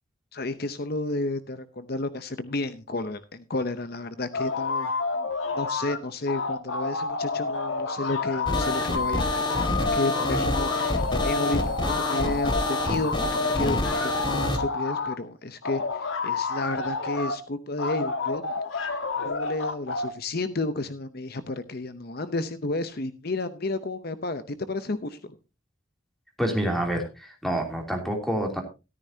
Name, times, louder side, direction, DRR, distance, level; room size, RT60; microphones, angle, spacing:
voice 1, 0.3-4.9 5.5-13.3 13.6-18.9 19.2-25.3, left 2 dB, 50° left, 12 dB, 0.8 m, -32 dB
sound 1, 4.3-6.0 6.3-15.2 15.6-17.4 17.8-20.1, left 4 dB, 70° left, 1.5 m, -29 dB
sound 2, 8.5-14.6, left 1 dB, 20° left, 1.8 m, -27 dB
voice 2, 26.4-28.6, equal, ahead, 2 dB, 3.0 m, -27 dB
13.5 x 13.5 x 2.8 m, 0.29 s
head